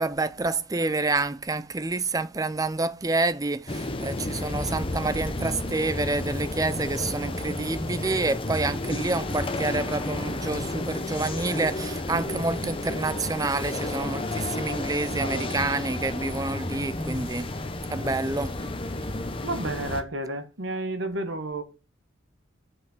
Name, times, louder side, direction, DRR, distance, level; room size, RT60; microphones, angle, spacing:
voice 1, 0.0-17.5 17.9-18.5, right 3 dB, 15° right, 0.4 m, -28 dB
sound 1, 3.7-20.0, left 2 dB, 25° left, 0.9 m, -31 dB
voice 2, 15.1-15.6 19.4-21.6, right 2 dB, 60° right, 1.4 m, -31 dB
7.8 x 5.9 x 6.1 m
head